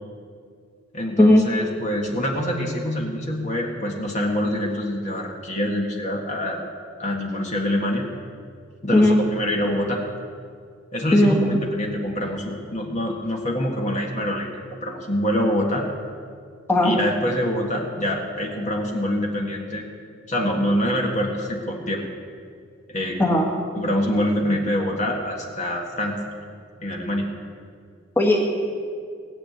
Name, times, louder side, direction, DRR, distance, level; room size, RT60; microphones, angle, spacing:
voice 1, 0.9-6.6 7.0-8.0 8.8-10.0 10.9-14.5 14.8-15.9 16.8-19.8 20.3-22.0 22.9-23.2 23.7-26.2 26.8-27.3, left 1 dB, 40° left, 0 dB, 1.7 m, -25 dB
voice 2, 11.1-11.4 16.7-16.9 23.2-23.5 28.1-28.5, left 1 dB, 10° left, -1 dB, 1.7 m, -16 dB
17.5 x 6.8 x 9.3 m, 2.2 s
head